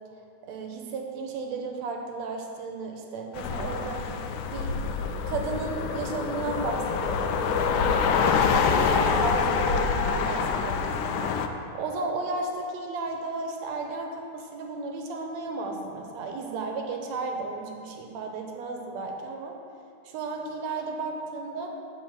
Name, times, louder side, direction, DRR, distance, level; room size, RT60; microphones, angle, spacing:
voice 1, 0.5-4.0 4.5-4.7 5.3-7.9 8.9-11.3 11.7-19.6 20.1-21.7, right 3 dB, 70° right, 2 dB, 2.0 m, -33 dB
sound 1, 3.3-11.5, left 5 dB, 85° left, 2.0 m, -26 dB
10.5 x 4.1 x 7.4 m, 2.4 s
omnidirectional pair, 3.4 m